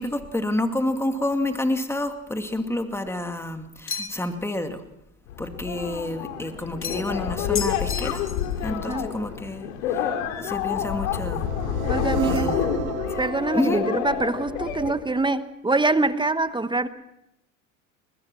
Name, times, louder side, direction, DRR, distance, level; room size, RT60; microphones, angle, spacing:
voice 1, 0.0-4.8 5.4-8.2 8.6-10.1 10.4-11.5 12.2-12.6 13.5-13.8, left 1 dB, 5° left, 7 dB, 2.3 m, -28 dB
sound 1, 3.9-4.4 6.8-7.2 7.6-8.5, left 6 dB, 30° left, 2.2 m, -33 dB
sound 2, 5.3-14.9, left 9 dB, 80° left, 2.7 m, -28 dB
voice 2, 8.7-9.1 11.9-12.6 13.2-16.9, right 2 dB, 10° right, 12 dB, 1.1 m, -25 dB
sound 3, 11.2-15.2, right 10 dB, 90° right, 1.5 m, -33 dB
22.5 x 20.0 x 6.1 m, 0.86 s
hypercardioid pair, 85°, 40 cm